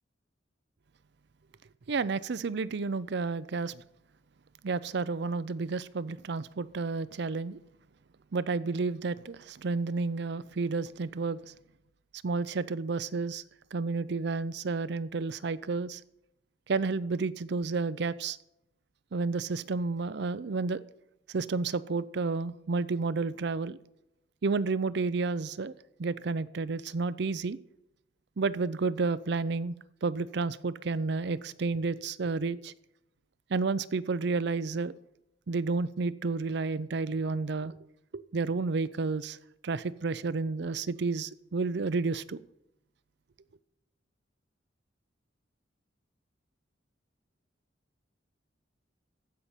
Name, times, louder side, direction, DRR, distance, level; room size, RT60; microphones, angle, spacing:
voice 1, 1.9-3.8 4.6-7.6 8.3-11.4 12.2-13.4 13.7-16.0 16.7-18.4 19.1-20.8 21.3-23.8 24.4-25.7 26.0-27.6 28.4-29.7 30.0-32.7 33.5-34.9 35.5-37.8 38.3-39.4 39.6-42.4, right 4 dB, 65° right, 0.5 m, -31 dB
15.0 x 5.8 x 6.7 m
head